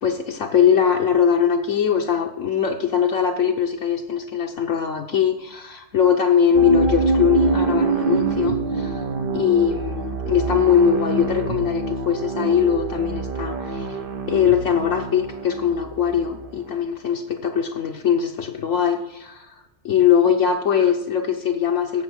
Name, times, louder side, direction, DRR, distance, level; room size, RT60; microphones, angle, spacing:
voice 1, 0.0-9.1 9.3-14.0 14.3-22.0, left 8 dB, 80° left, 0 dB, 1.3 m, -21 dB
sound 1, 6.5-16.5, right 3 dB, 50° right, 1.0 m, -25 dB
16.5 x 6.3 x 6.3 m, 0.96 s
omnidirectional pair, 1.3 m